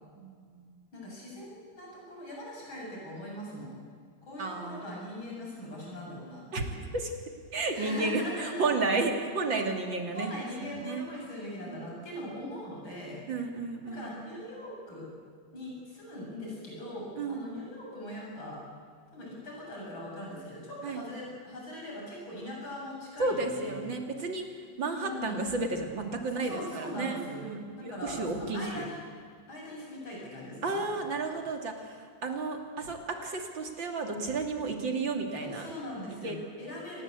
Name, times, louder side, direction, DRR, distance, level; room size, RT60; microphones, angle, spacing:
voice 1, 0.2-0.7 4.4-4.8 6.5-6.6 6.9-7.1 7.5-10.3 10.6-11.1 11.7-11.9 13.3-14.2 17.2-17.5 20.8-21.0 23.2-24.5 24.8-28.8 30.6-35.6 36.2-36.4, right 3 dB, 65° right, 4 dB, 3.4 m, -32 dB
voice 2, 0.9-3.8 4.2-6.9 7.7-8.6 10.1-13.2 13.9-15.1 15.5-18.6 19.1-23.9 25.0-25.5 26.3-29.0 29.5-31.0 35.4-37.0, left 1 dB, 75° left, -3 dB, 8.7 m, -41 dB
27.5 x 19.0 x 8.3 m, 2.1 s
omnidirectional pair, 2.2 m